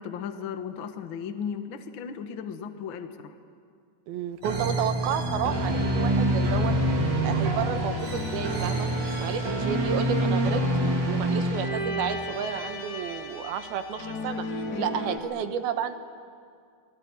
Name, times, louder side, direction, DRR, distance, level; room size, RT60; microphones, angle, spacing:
voice 1, 0.0-3.4 14.7-15.1, left 7 dB, 70° left, 7 dB, 1.1 m, -36 dB
voice 2, 4.1-6.8 7.2-8.9 9.2-10.6 11.1-14.4 14.8-16.0, right 8 dB, 75° right, 9 dB, 2.9 m, -31 dB
sound 1, 4.4-12.1, right 1 dB, 35° right, 2.4 m, -27 dB
sound 2, 5.1-15.2, left 2 dB, 30° left, 2.8 m, -35 dB
sound 3, 5.5-11.7, right 1 dB, 15° right, 2.7 m, -43 dB
27.5 x 21.5 x 9.7 m, 2.3 s
omnidirectional pair, 4.6 m